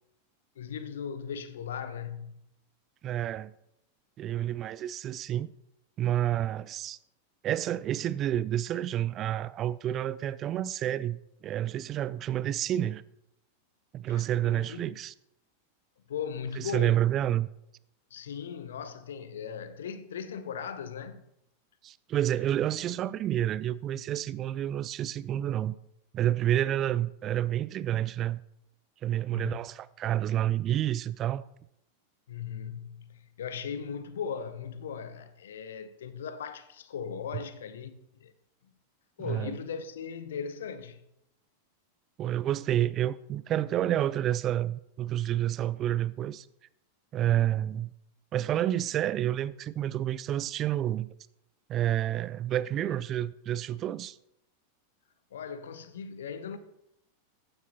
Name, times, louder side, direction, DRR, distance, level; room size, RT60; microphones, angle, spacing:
voice 1, 0.6-2.4 14.1-15.0 16.1-17.0 18.1-21.2 29.3-29.6 32.3-38.3 39.2-41.0 55.3-56.6, left 7 dB, 60° left, 0.7 m, -38 dB
voice 2, 3.0-3.5 4.2-5.5 6.0-7.0 7.4-13.0 13.9-15.1 16.6-17.5 21.8-25.7 26.1-28.4 29.0-31.4 39.2-39.6 42.2-46.5 47.1-47.9 48.3-51.1 51.7-54.2, right 12 dB, 30° right, 0.3 m, -29 dB
14.5 x 9.6 x 2.9 m
figure-of-eight pair, 90°, 0 cm